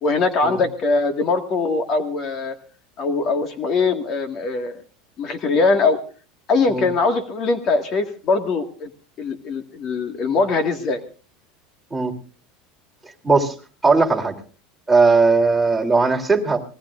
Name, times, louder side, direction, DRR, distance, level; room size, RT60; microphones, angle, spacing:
voice 1, 0.0-2.6 3.0-4.8 5.2-6.0 6.5-8.9 9.2-11.0, left 3 dB, 40° left, 7 dB, 1.8 m, -21 dB
voice 2, 13.2-13.5 13.8-14.3 14.9-16.6, right 4 dB, 5° right, 1 dB, 3.2 m, -18 dB
25.0 x 19.0 x 2.5 m, 0.37 s
supercardioid pair, 140°, 0 cm